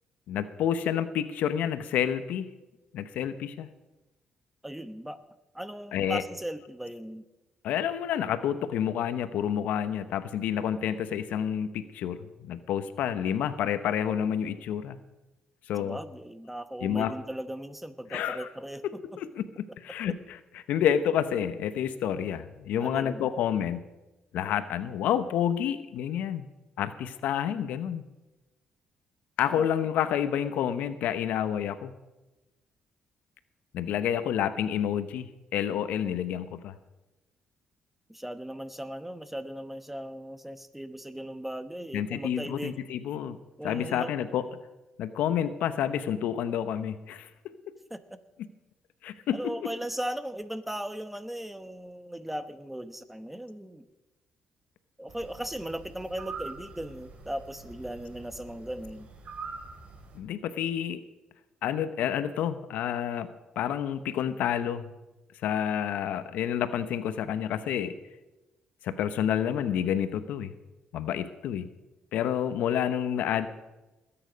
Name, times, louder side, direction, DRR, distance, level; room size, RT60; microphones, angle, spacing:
voice 1, 0.3-2.5 2.9-3.7 5.9-6.3 7.6-15.0 15.7-16.0 16.8-17.1 18.1-18.5 18.8-23.8 24.3-26.5 26.8-28.0 29.4-31.9 33.7-36.7 41.9-43.4 43.6-44.5 45.0-47.3 49.0-49.7 60.1-61.0 61.6-63.3 63.6-64.9 65.4-67.9 68.8-70.5 70.9-71.7 72.1-73.5, left 9 dB, 80° left, 12 dB, 0.9 m, -29 dB
voice 2, 4.6-5.2 5.5-7.2 15.8-18.8 22.8-23.3 29.5-29.7 38.1-42.8 43.6-44.1 47.9-48.0 49.3-53.8 55.0-59.1, right 1 dB, 5° right, 11 dB, 1.1 m, -37 dB
sound 1, 55.1-60.2, right 4 dB, 55° right, 3.0 m, -44 dB
20.5 x 8.9 x 5.2 m, 1.1 s
cardioid pair, 75°, 3 cm